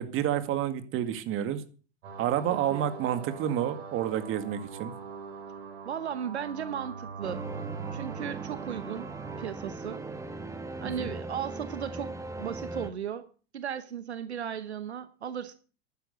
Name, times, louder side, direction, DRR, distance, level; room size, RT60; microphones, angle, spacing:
voice 1, 0.0-1.6 2.2-4.9 10.8-11.1, right 10 dB, 40° right, 10 dB, 2.0 m, -29 dB
sound 1, 2.0-9.5, right 5 dB, 70° right, 5.6 m, -42 dB
voice 2, 2.5-2.9 5.8-7.5 7.9-9.1 9.4-10.0 10.8-13.3 13.5-15.5, right 8 dB, 85° right, 12 dB, 1.1 m, -36 dB
sound 2, 7.2-12.9, right 2 dB, 10° right, 1.5 m, -39 dB
11.5 x 10.0 x 6.5 m, 0.39 s
hypercardioid pair, 95°, 32 cm